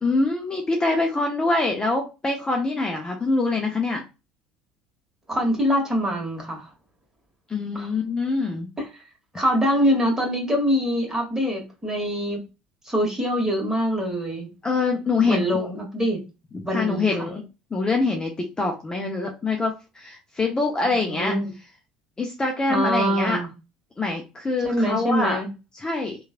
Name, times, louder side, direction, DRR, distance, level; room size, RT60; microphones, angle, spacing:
voice 1, 0.0-4.0 7.5-8.7 14.6-15.7 16.5-17.4 17.7-21.3 22.2-23.4 24.0-25.4 25.7-26.2, left 3 dB, 20° left, 1 dB, 0.7 m, -24 dB
voice 2, 5.3-6.7 7.7-7.9 8.8-8.9 9.3-12.4 12.8-14.5 15.3-16.2 16.6-17.3 21.0-21.5 22.7-23.5 24.6-25.5, equal, 15° right, 0 dB, 1.4 m, -24 dB
3.1 x 2.4 x 2.4 m, 0.28 s
hypercardioid pair, 70°, 4 cm